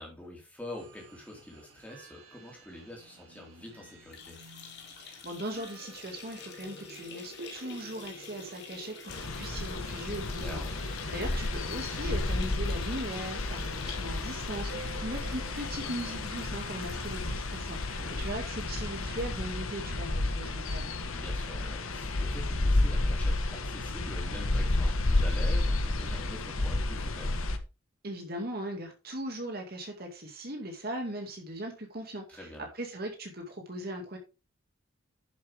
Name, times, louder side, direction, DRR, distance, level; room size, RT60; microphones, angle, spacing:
voice 1, 0.0-4.4 10.3-10.8 17.9-18.2 21.0-27.4 32.3-32.7, left 1 dB, 5° left, -2 dB, 3.9 m, -45 dB
sound 1, 0.8-18.5, right 2 dB, 70° right, 3.7 m, -52 dB
sound 2, 4.0-19.4 19.8-19.9 20.2-20.3 21.3-21.4, left 4 dB, 50° left, 2.5 m, -48 dB
voice 2, 5.0-10.6 11.1-20.9 28.0-32.5 32.7-34.2, right 1 dB, 45° right, 2 dB, 2.4 m, -39 dB
sound 3, 9.1-27.6, left 2 dB, 85° left, 1.4 m, -31 dB
10.5 x 7.5 x 3.6 m, 0.30 s
head